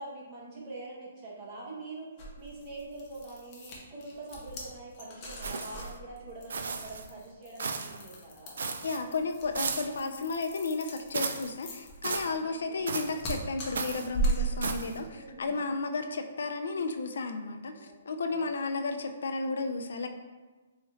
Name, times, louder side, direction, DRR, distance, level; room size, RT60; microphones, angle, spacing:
voice 1, 0.0-2.1 2.4-8.6 12.3-13.0 14.4-14.7 15.1-15.6 17.7-18.8, right 2 dB, 25° right, -5 dB, 0.9 m, -45 dB
sound 1, 2.2-15.1, right 2 dB, 25° left, 0.6 m, -37 dB
sound 2, 5.4-5.9 6.5-7.1 7.6-8.0 8.6-9.0 9.5-10.0 11.1-11.5 12.0-12.3 12.9-13.2 13.7-14.1 14.6-15.0, right 5 dB, 70° right, 0.3 m, -35 dB
voice 2, 8.8-20.1, left 3 dB, 75° left, 7 dB, 0.3 m, -33 dB
4.0 x 2.4 x 3.1 m, 1.3 s
hypercardioid pair, 165°, 0 cm